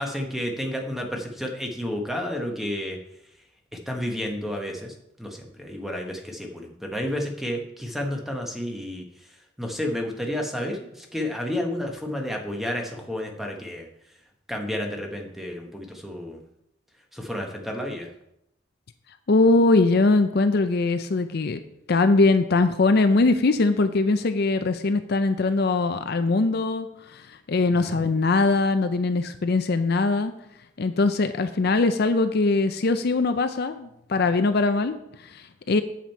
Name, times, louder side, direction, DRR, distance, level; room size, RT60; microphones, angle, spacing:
voice 1, 0.0-3.0 3.9-9.0 9.6-13.9 14.5-16.4 17.1-18.1 27.7-28.0, left 1 dB, ahead, 2 dB, 1.1 m, -31 dB
voice 2, 19.3-21.6 21.9-30.3 30.8-35.8, left 3 dB, 50° left, 9 dB, 0.5 m, -21 dB
8.5 x 7.3 x 4.5 m, 0.80 s
head